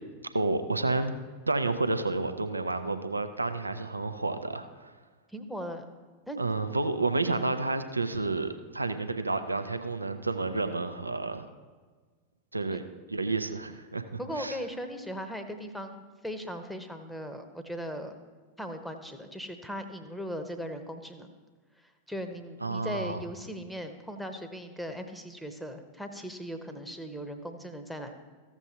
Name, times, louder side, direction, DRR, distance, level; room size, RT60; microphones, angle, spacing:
voice 1, 0.3-1.1 1.5-4.9 6.4-11.5 12.5-12.8 13.1-14.0 14.4-14.6 22.6-23.2, right 3 dB, 80° right, 9 dB, 0.5 m, -30 dB
voice 2, 5.3-5.9 6.3-6.4 12.7-12.8 14.2-18.1 18.6-21.3 21.8-28.1, equal, ahead, 6 dB, 0.9 m, -38 dB
14.5 x 7.1 x 2.8 m, 1.4 s
figure-of-eight pair, 90°, 0 cm